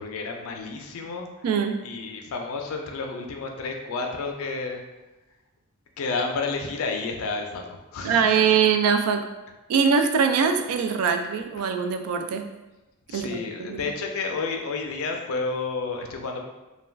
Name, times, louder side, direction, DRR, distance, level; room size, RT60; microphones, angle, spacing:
voice 1, 0.0-1.3 1.8-4.8 6.0-8.3 11.6-11.7 13.1-16.4, left 4 dB, 65° left, 3 dB, 0.4 m, -31 dB
voice 2, 1.4-1.8 8.0-9.3 9.7-12.5 13.1-13.8, right 6 dB, 75° right, 10 dB, 0.3 m, -22 dB
2.2 x 2.2 x 3.3 m, 1.1 s
head